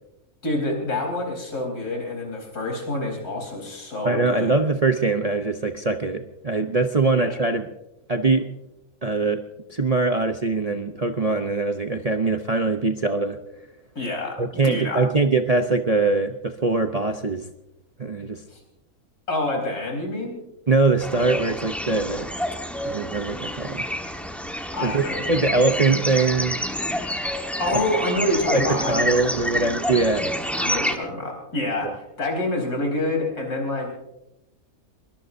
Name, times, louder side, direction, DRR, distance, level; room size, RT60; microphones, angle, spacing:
voice 1, 0.4-4.5 7.1-7.3 13.9-15.0 18.5-18.6 19.3-20.4 24.7-25.6 27.6-29.5 30.6-33.9, left 1 dB, 80° left, 1 dB, 4.8 m, -27 dB
voice 2, 4.0-7.7 8.1-8.5 9.0-9.4 9.7-13.4 14.4-17.4 18.0-18.4 20.7-22.3 22.8-23.9 24.8-26.6 27.7-27.8 28.5-30.3 31.8-31.9, right 3 dB, 35° right, 5 dB, 0.7 m, -22 dB
sound 1, 21.0-31.0, equal, ahead, 1.2 m, -28 dB
22.0 x 21.0 x 2.7 m, 0.87 s
omnidirectional pair, 1.6 m